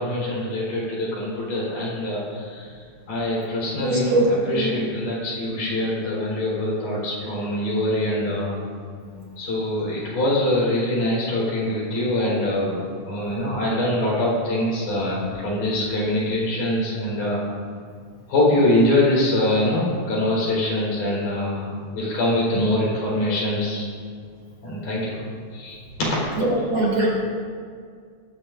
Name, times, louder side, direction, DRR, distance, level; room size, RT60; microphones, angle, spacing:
voice 1, 0.0-2.7 3.1-8.6 9.4-12.7 13.1-17.4 18.3-23.9 24.6-25.2 25.5-26.4, left 1 dB, 75° left, -6 dB, 5.9 m, -24 dB
voice 2, 3.8-4.3 4.5-4.9 5.7-5.8 9.1-9.2 26.4-27.1, right 2 dB, 45° right, -3 dB, 3.4 m, -22 dB
20.0 x 13.5 x 2.6 m, 2.1 s
omnidirectional pair, 3.8 m